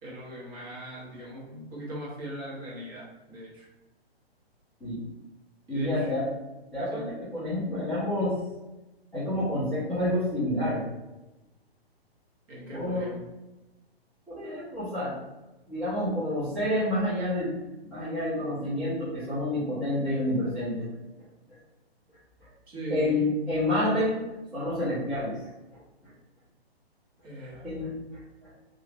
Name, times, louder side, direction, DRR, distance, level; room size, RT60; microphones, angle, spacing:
voice 1, 0.0-3.7 5.7-6.1 6.9-7.1 12.5-13.2 22.7-23.3 27.2-27.7, right 1 dB, 25° right, -5 dB, 0.9 m, -39 dB
voice 2, 5.7-6.2 6.7-8.4 9.1-10.8 12.7-13.1 14.3-15.2 15.7-17.5 17.8-20.9 22.4-22.5 22.9-24.2 24.5-25.3 25.7-25.8 27.6-28.2, left 1 dB, ahead, -16 dB, 0.6 m, -28 dB
2.7 x 2.4 x 3.3 m, 1.0 s
figure-of-eight pair, 125°, 32 cm